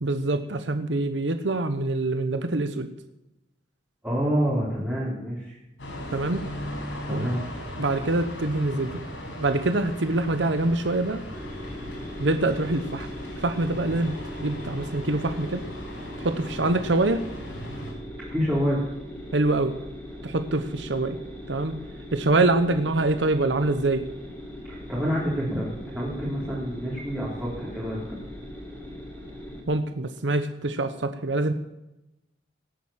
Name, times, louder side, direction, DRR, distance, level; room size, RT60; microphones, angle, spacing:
voice 1, 0.0-2.9 6.1-6.4 7.1-7.4 7.8-9.0 9.4-11.2 12.2-13.1 13.4-14.1 14.4-15.6 16.2-17.2 19.3-19.8 20.2-21.2 21.5-21.7 22.1-24.1 29.7-31.5, right 2 dB, 75° right, 9 dB, 1.0 m, -25 dB
voice 2, 4.0-5.6 7.0-7.4 18.2-18.8 24.6-28.2, equal, 10° right, -8 dB, 3.8 m, -27 dB
sound 1, 5.8-17.9, left 1 dB, 90° left, 5.6 m, -38 dB
sound 2, 11.3-29.6, equal, 10° left, 3.7 m, -40 dB
18.5 x 8.8 x 7.4 m, 0.92 s
head